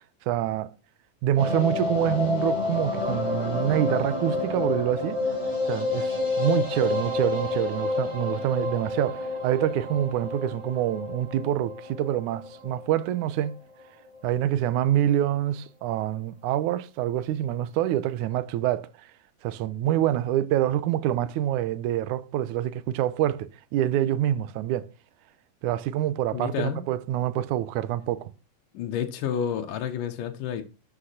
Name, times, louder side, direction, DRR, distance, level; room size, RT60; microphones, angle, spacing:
voice 1, 0.3-0.7 1.2-5.2 5.7-13.5 14.2-18.9 19.4-24.9 25.6-28.3, right 12 dB, 70° right, 2.1 m, -26 dB
sound 1, 1.4-13.5 13.8-13.9 14.1-14.2 14.5-14.6, left 3 dB, 10° left, 5.0 m, -29 dB
voice 2, 26.3-26.8 28.7-30.6, left 8 dB, 70° left, 2.7 m, -30 dB
13.0 x 7.7 x 5.8 m
omnidirectional pair, 4.1 m